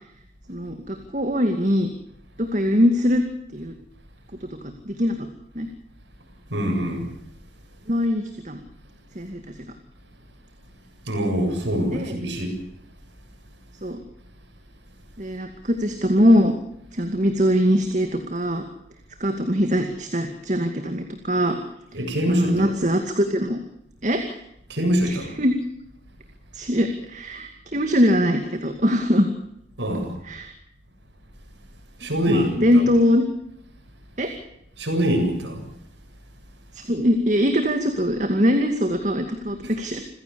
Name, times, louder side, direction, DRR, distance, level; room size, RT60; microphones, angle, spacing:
voice 1, 0.5-1.9 2.4-3.2 3.5-3.7 4.4-4.5 4.9-5.2 5.5-5.7 7.9-8.6 9.2-9.5 11.9-12.2 13.8-14.0 15.2-16.5 16.9-18.6 19.2-21.6 22.3-23.6 24.0-24.4 25.0-25.6 26.5-29.3 30.2-30.5 32.3-33.2 34.2-34.3 36.7-40.0, equal, 40° right, 6 dB, 2.4 m, -22 dB
voice 2, 6.5-7.1 11.1-12.5 21.9-22.7 24.7-25.3 29.8-30.1 32.0-32.8 34.8-35.6 39.6-39.7, equal, 80° right, 3 dB, 7.5 m, -24 dB
28.0 x 16.0 x 7.0 m, 0.75 s
head